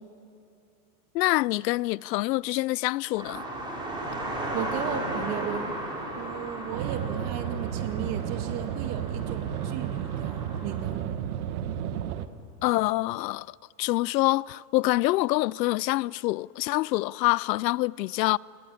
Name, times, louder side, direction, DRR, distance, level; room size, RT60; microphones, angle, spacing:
voice 1, 1.1-3.4 12.6-18.4, left 19 dB, 85° left, 0.5 m, -26 dB
sound 1, 3.2-10.8, right 1 dB, 10° right, 4.0 m, -36 dB
voice 2, 4.5-5.7 6.2-11.0, right 9 dB, 30° right, 2.0 m, -35 dB
sound 2, 6.7-12.3, right 9 dB, 60° right, 1.4 m, -32 dB
29.0 x 19.0 x 9.9 m
supercardioid pair, 170°, 49 cm